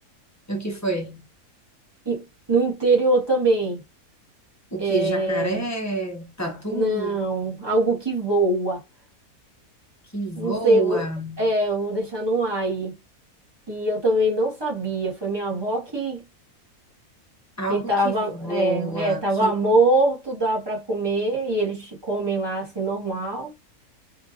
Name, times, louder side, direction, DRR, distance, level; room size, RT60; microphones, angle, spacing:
voice 1, 0.5-1.3 4.7-7.2 10.1-11.5 17.6-19.5, right 2 dB, 15° left, 0.7 m, -29 dB
voice 2, 2.0-3.8 4.8-5.6 6.7-8.8 10.4-11.0 11.4-13.0 13.7-16.2 17.7-23.5, right 2 dB, 20° right, 1.3 m, -23 dB
3.3 x 3.1 x 2.5 m
omnidirectional pair, 1.6 m